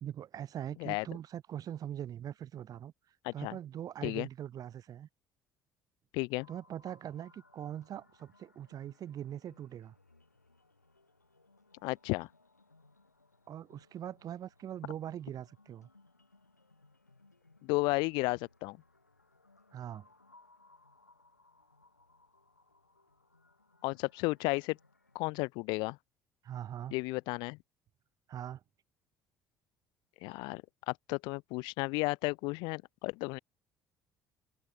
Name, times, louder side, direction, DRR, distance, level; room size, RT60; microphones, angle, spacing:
voice 1, 0.0-2.9 3.3-5.1 6.5-9.9 13.5-15.9 19.7-20.1 26.4-26.9 28.3-28.6, right 10 dB, 45° right, 1.0 m, -42 dB
voice 2, 3.2-3.6 4.0-4.3 6.1-6.5 11.8-12.3 17.6-18.8 23.8-24.8 25.1-26.0 26.9-27.6 30.2-33.4, left 26 dB, 60° left, 0.6 m, -33 dB
sound 1, 6.4-25.3, left 3 dB, 90° left, 7.6 m, -65 dB
figure-of-eight pair, 55°, 9 cm